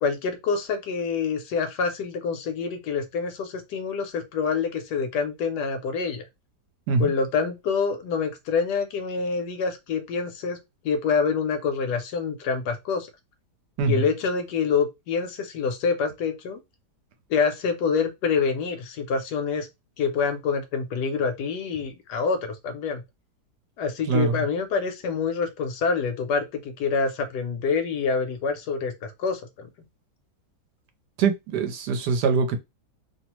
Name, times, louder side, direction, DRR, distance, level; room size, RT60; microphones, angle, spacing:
voice 1, 0.0-6.2 7.0-10.6 10.8-13.1 13.9-16.6 17.3-19.7 20.0-23.0 23.8-29.7, left 5 dB, 75° left, 1.1 m, -26 dB
voice 2, 31.2-32.6, right 5 dB, 75° right, 1.1 m, -23 dB
2.9 x 2.0 x 2.9 m
omnidirectional pair, 1.9 m